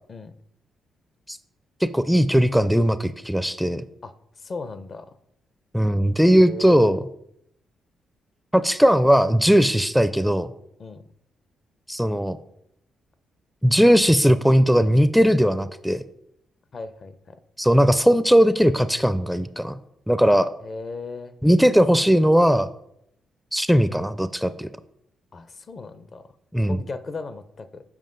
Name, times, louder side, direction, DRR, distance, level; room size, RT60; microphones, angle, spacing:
voice 1, 1.8-3.8 5.7-7.0 8.5-10.5 11.9-12.4 13.6-16.0 17.6-19.8 20.1-20.5 21.4-22.7 23.5-24.7 26.5-26.8, equal, ahead, 13 dB, 0.4 m, -18 dB
voice 2, 4.0-5.1 6.4-7.0 10.8-11.0 16.7-17.4 20.6-21.4 25.3-26.3 26.7-27.8, left 3 dB, 50° left, 12 dB, 0.6 m, -37 dB
7.3 x 5.1 x 3.8 m, 0.77 s
supercardioid pair, 60°, 0 cm